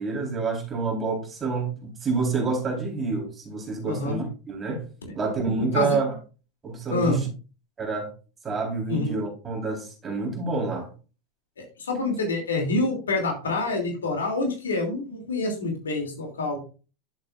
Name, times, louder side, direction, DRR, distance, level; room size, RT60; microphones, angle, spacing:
voice 1, 0.0-4.8 5.1-6.1 6.6-7.3 7.8-8.1 8.4-10.9, right 4 dB, 20° right, 3.9 m, -28 dB
voice 2, 3.9-4.2 5.6-6.0 6.9-7.2 8.9-9.1 11.8-16.6, left 2 dB, 75° left, 2.7 m, -27 dB
10.5 x 7.5 x 2.5 m
figure-of-eight pair, 85°, 0 cm